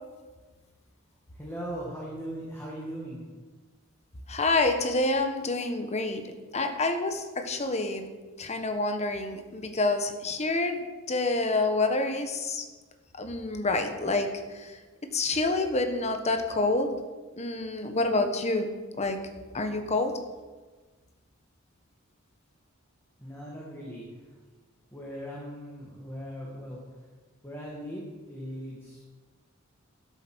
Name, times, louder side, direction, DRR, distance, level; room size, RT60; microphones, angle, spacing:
voice 1, 1.3-3.2 23.2-24.0 24.9-26.8 27.4-29.0, equal, 10° left, -4 dB, 2.1 m, -39 dB
voice 2, 4.3-6.2 6.5-8.1 8.4-12.7 13.1-14.8 15.1-16.9 17.4-18.7 19.0-19.2 19.5-20.1, left 2 dB, 35° left, 7 dB, 1.2 m, -28 dB
12.5 x 8.2 x 6.2 m, 1.3 s
head